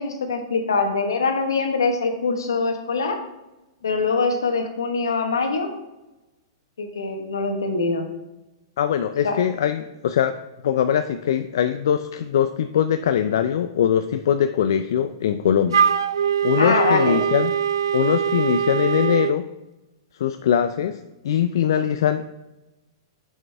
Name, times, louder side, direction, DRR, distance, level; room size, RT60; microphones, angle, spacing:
voice 1, 0.0-3.2 3.8-5.7 6.8-8.1 9.2-9.4 16.6-17.2, left 4 dB, 85° left, 5 dB, 1.3 m, -23 dB
voice 2, 8.8-10.4 10.6-15.8 16.4-17.5 17.9-19.5 20.2-21.0 21.2-22.4, left 9 dB, 70° left, 9 dB, 0.4 m, -22 dB
Wind instrument woodwind instrument, 15.7-19.4, right 8 dB, 85° right, 0.3 m, -22 dB
8.9 x 6.3 x 3.4 m, 1.0 s
hypercardioid pair, 120°, 2 cm